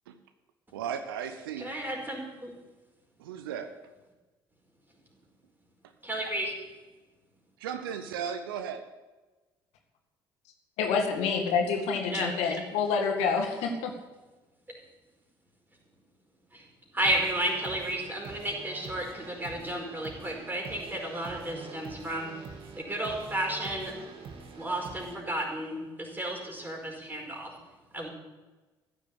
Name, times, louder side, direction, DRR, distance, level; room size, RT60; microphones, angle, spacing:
voice 1, 0.7-1.7 3.2-3.7 7.6-8.9, right 8 dB, 75° right, 0.8 m, -35 dB
voice 2, 1.6-2.5 6.1-6.5 12.1-12.3 16.5-16.7 16.9-22.5 22.8-24.0 24.5-27.6 27.9-28.1, right 1 dB, 15° right, 4.8 m, -32 dB
voice 3, 10.8-13.9, left 5 dB, 65° left, 2.0 m, -27 dB
sound 1, 17.0-25.4, right 5 dB, 50° right, 2.2 m, -46 dB
14.5 x 7.1 x 8.4 m
figure-of-eight pair, 50°, 12 cm